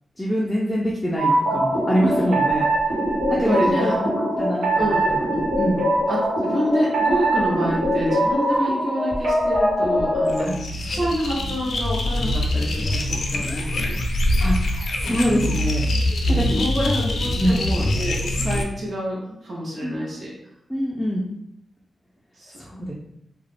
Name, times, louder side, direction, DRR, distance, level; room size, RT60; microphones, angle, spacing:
voice 1, 0.2-2.6 3.3-4.1 4.4-5.2 5.6-5.8 10.4-10.6 14.4-15.8 16.3-16.6 17.4-17.6 19.8-20.1 20.7-21.3 22.6-22.9, equal, ahead, -5 dB, 0.4 m, -24 dB
sound 1, 1.2-10.4, right 1 dB, 90° right, 1.1 m, -22 dB
voice 2, 3.5-3.9 4.8-5.4 6.1-14.0 16.3-20.3 22.3-22.5, equal, 50° right, -5 dB, 0.7 m, -27 dB
sound 2, 10.3-18.6, left 1 dB, 70° left, 0.4 m, -24 dB
2.3 x 2.0 x 3.1 m, 0.78 s
wide cardioid pair, 125°, 0 cm